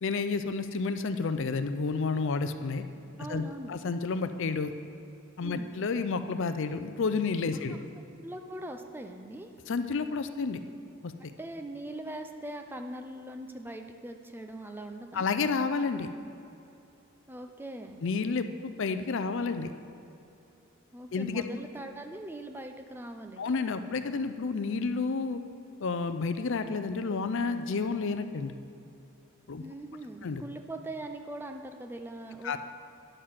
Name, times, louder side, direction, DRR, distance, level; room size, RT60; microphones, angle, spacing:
voice 1, 0.0-2.8 3.3-3.4 3.7-4.7 5.4-7.8 9.7-10.6 11.0-11.3 15.1-16.1 18.0-19.7 21.1-21.4 23.4-25.4 25.8-28.5 29.5-29.6 30.2-30.4 32.4-32.6, left 4 dB, 60° left, 9 dB, 0.5 m, -30 dB
voice 2, 3.2-3.8 5.4-5.7 7.5-7.8 8.2-9.5 11.4-15.3 17.3-18.0 20.9-23.5 29.6-32.6, right 1 dB, 10° right, 5 dB, 0.5 m, -41 dB
10.0 x 6.7 x 5.8 m, 2.7 s
head